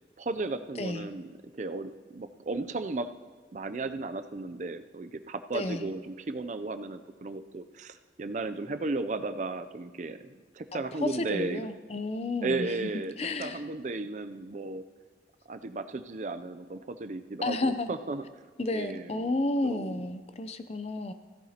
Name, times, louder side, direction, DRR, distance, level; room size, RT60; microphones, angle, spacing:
voice 1, 0.2-3.1 3.5-11.7 12.4-13.1 13.4-14.8 15.5-18.2 18.7-19.3 19.6-20.0, right 3 dB, 40° right, 10 dB, 0.4 m, -35 dB
voice 2, 0.8-1.1 5.5-5.9 10.7-12.9 13.2-13.6 17.4-18.0 18.6-21.1, left 2 dB, 35° left, 10 dB, 0.6 m, -32 dB
16.0 x 14.5 x 2.9 m, 1.5 s
head